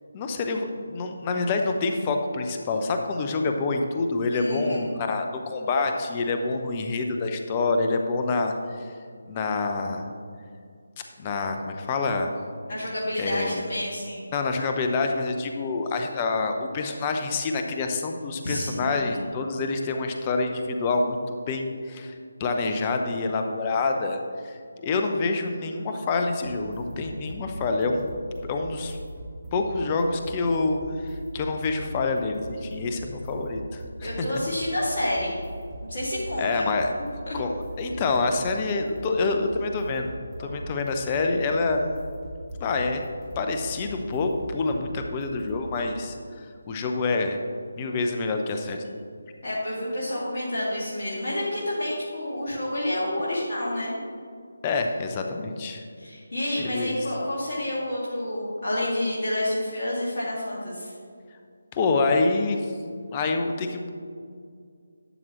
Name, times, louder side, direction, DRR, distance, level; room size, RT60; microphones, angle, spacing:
voice 1, 0.1-8.9 9.3-10.1 11.2-12.3 13.2-13.6 14.3-22.1 22.4-28.1 28.4-29.0 29.5-34.3 36.4-36.9 37.3-37.5 37.8-40.1 40.4-41.8 42.6-43.0 43.4-46.2 46.7-47.4 47.8-48.8 54.6-55.8 56.6-57.0 61.7-62.6 63.1-63.9, left 3 dB, 20° left, 4 dB, 0.7 m, -27 dB
voice 2, 4.3-4.9 12.7-14.3 18.4-19.2 34.0-35.4 35.8-36.7 37.3-37.4 40.4-40.5 49.4-53.9 56.0-60.9, left 1 dB, 45° left, -8 dB, 2.1 m, -29 dB
sound 1, 26.4-46.0, right 1 dB, 10° right, 1.8 m, -41 dB
12.0 x 7.6 x 3.1 m, 2.2 s
figure-of-eight pair, 155°, 0 cm